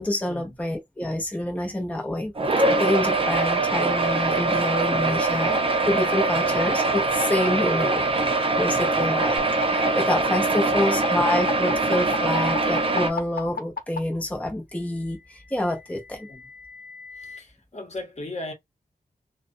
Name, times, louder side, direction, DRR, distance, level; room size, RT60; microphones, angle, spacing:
voice 1, 0.0-2.3 2.6-8.0 8.6-9.4 9.7-16.3, left 1 dB, 10° left, 0.6 m, -27 dB
sound 1, 2.4-13.1, right 3 dB, 40° right, 0.6 m, -23 dB
voice 2, 7.5-8.0 10.5-10.8 16.2-16.5 17.2-18.5, left 2 dB, 50° left, 0.9 m, -38 dB
sound 2, 9.4-14.0 15.1-17.4, left 5 dB, 80° left, 0.7 m, -34 dB
2.3 x 2.1 x 2.5 m
wide cardioid pair, 90°, 15 cm